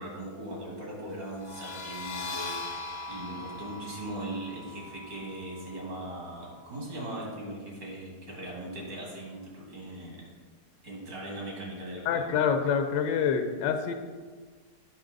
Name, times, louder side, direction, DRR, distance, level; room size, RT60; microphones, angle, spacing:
voice 1, 0.0-2.7 3.1-10.2 10.8-12.3, right 1 dB, 70° right, -3 dB, 2.9 m, -39 dB
sound 1, 1.3-6.8, left 2 dB, 55° left, 0.7 m, -41 dB
voice 2, 12.1-13.9, left 7 dB, 85° left, 6 dB, 1.4 m, -26 dB
8.7 x 5.8 x 3.9 m, 1.5 s
omnidirectional pair, 1.9 m